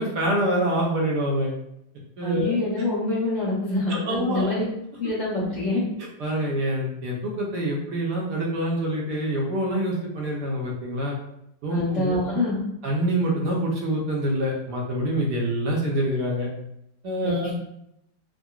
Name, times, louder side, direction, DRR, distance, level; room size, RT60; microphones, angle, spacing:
voice 1, 0.0-1.5 2.2-2.6 3.9-4.5 6.2-11.2 11.6-12.2 12.8-16.5 17.0-17.5, right 1 dB, 75° right, -2 dB, 1.1 m, -26 dB
voice 2, 2.2-4.6 5.0-5.8 6.4-6.5 11.7-12.6 17.2-17.5, left 2 dB, 55° left, -10 dB, 0.9 m, -26 dB
3.7 x 2.0 x 2.3 m, 0.79 s
omnidirectional pair, 1.9 m